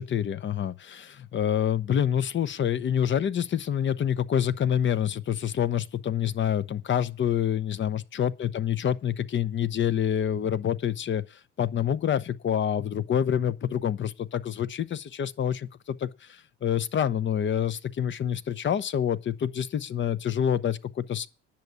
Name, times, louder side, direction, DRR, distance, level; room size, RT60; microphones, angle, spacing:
voice 1, 0.0-21.3, left 9 dB, 30° left, 0.9 m, -27 dB
10.5 x 7.1 x 8.4 m
hypercardioid pair, 65°, 36 cm